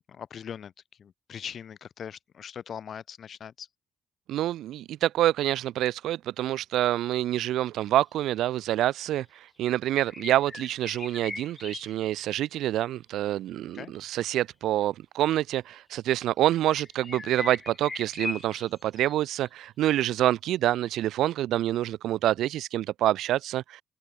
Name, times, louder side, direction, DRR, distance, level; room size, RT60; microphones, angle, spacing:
voice 1, 0.1-0.7 1.0-3.7 13.7-13.9, left 8 dB, 55° left, 7.1 m, -40 dB
voice 2, 4.3-9.3 9.6-23.8, right 13 dB, 80° right, 5.6 m, -27 dB
sound 1, 8.0-8.1 8.8-9.1 10.1-12.6 13.9-14.1 15.7-15.8 16.7-19.5, left 3 dB, 25° left, 5.8 m, -39 dB
open air
cardioid pair, 90°, 0 cm